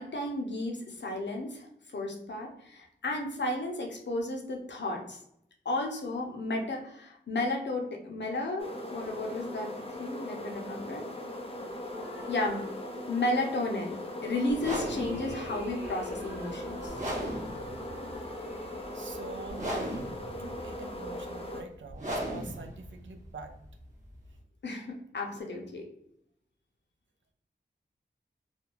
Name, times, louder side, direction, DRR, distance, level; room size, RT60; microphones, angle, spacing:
voice 1, 0.0-1.7 1.9-5.2 5.6-9.7 10.0-11.0 12.3-12.7 13.1-17.0 24.6-25.8, left 2 dB, 70° left, 1 dB, 0.6 m, -33 dB
sound 1, 8.6-21.6, left 1 dB, 30° left, 0.5 m, -40 dB
sound 2, 11.8-13.5 14.2-20.3, equal, 10° right, 0.7 m, -46 dB
sound 3, 14.5-24.4, equal, 40° right, 0.9 m, -38 dB
voice 2, 18.9-23.5, right 4 dB, 85° right, 5 dB, 0.4 m, -45 dB
2.5 x 2.2 x 2.9 m, 0.75 s
wide cardioid pair, 75°, 19 cm